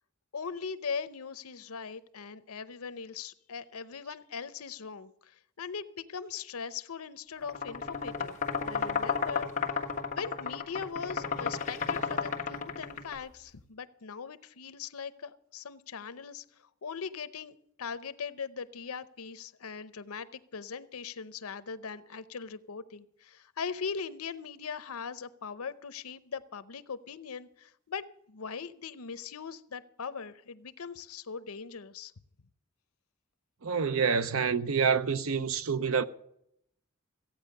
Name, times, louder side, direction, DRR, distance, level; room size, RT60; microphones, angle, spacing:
voice 1, 0.3-8.4 8.6-9.5 10.1-32.1, left 6 dB, 85° left, 0.7 m, -40 dB
sound 1, 7.4-13.2, left 5 dB, 35° left, 1.4 m, -32 dB
voice 2, 33.6-36.0, right 6 dB, 75° right, 0.7 m, -27 dB
15.5 x 9.0 x 6.5 m
head